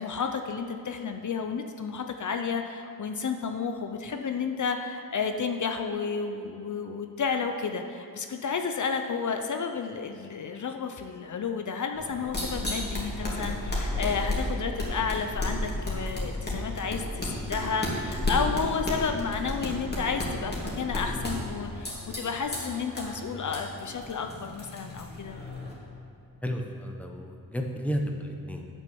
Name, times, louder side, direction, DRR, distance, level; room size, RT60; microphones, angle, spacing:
voice 1, 0.0-25.4, left 5 dB, 55° left, 5 dB, 0.6 m, -31 dB
sound 1, 11.9-25.7, left 1 dB, 30° left, 2.4 m, -33 dB
voice 2, 26.4-28.6, equal, 5° left, 2 dB, 1.0 m, -32 dB
8.6 x 6.3 x 7.0 m, 2.6 s
wide cardioid pair, 90°, 35 cm